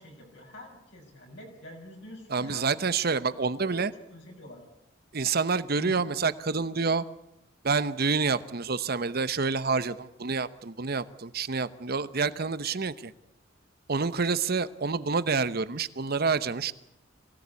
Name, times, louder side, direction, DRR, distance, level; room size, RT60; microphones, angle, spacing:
voice 1, 0.0-2.8 3.6-3.8 4.1-4.6 5.8-6.0, left 1 dB, 65° left, 1 dB, 6.4 m, -46 dB
voice 2, 2.3-3.9 5.1-7.0 7.6-13.1 13.9-16.7, right 4 dB, 50° right, 14 dB, 0.9 m, -28 dB
23.0 x 17.0 x 8.3 m, 0.88 s
head